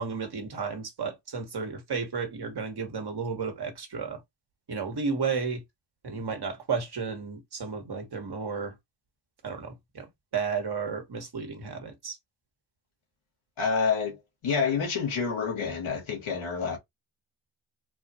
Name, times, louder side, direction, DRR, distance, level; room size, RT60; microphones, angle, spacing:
voice 1, 0.0-4.2 4.7-5.6 6.0-8.7 9.4-12.2, right 5 dB, 55° right, 1.4 m, -33 dB
voice 2, 13.6-14.2 14.4-16.8, left 5 dB, 85° left, 1.6 m, -28 dB
4.0 x 2.5 x 2.7 m
cardioid pair, 75°, 47 cm